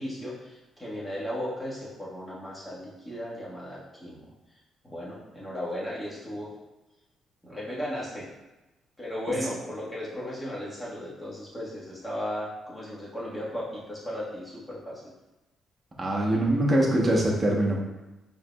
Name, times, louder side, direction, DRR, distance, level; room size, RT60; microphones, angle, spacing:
voice 1, 0.0-4.3 4.8-6.5 7.4-8.3 9.0-15.0, left 1 dB, 10° left, -7 dB, 1.4 m, -36 dB
voice 2, 16.0-17.8, right 1 dB, 25° right, -2 dB, 1.0 m, -23 dB
4.7 x 3.3 x 2.3 m, 1.0 s
cardioid pair, 90°, 0 cm